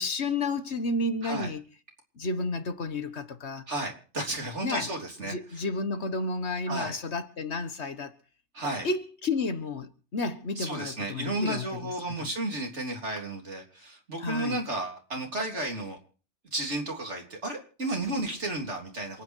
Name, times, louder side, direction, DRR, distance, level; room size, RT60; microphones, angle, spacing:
voice 1, 0.0-1.6 2.2-3.7 4.6-4.9 5.3-8.1 8.8-11.9 12.2-12.3 14.2-14.6, left 3 dB, 75° left, 1.7 m, -31 dB
voice 2, 3.7-5.7 6.7-7.0 8.5-8.9 10.6-16.0 16.5-19.2, right 2 dB, 85° right, 3.7 m, -33 dB
27.5 x 9.4 x 4.6 m
omnidirectional pair, 1.2 m